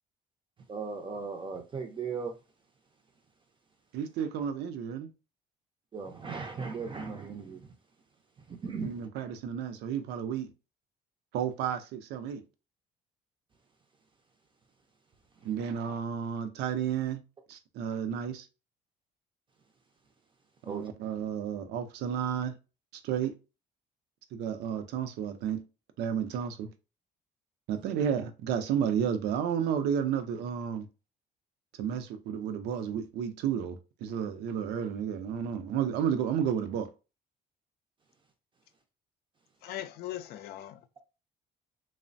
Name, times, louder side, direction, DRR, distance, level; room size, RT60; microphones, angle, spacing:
voice 1, 0.7-2.3 5.9-7.6 8.6-8.9 20.7-20.8, right 5 dB, 30° right, 0.5 m, -37 dB
voice 2, 3.9-5.1 8.8-10.5 11.3-12.4 15.4-17.2 17.5-18.5 20.7-22.6 23.0-23.3 24.3-25.6 26.0-26.7 27.7-30.9 31.8-36.9, right 8 dB, 80° right, 0.5 m, -32 dB
voice 3, 39.6-41.0, left 13 dB, 70° left, 0.4 m, -40 dB
3.1 x 2.0 x 2.5 m
cardioid pair, 110°, 17 cm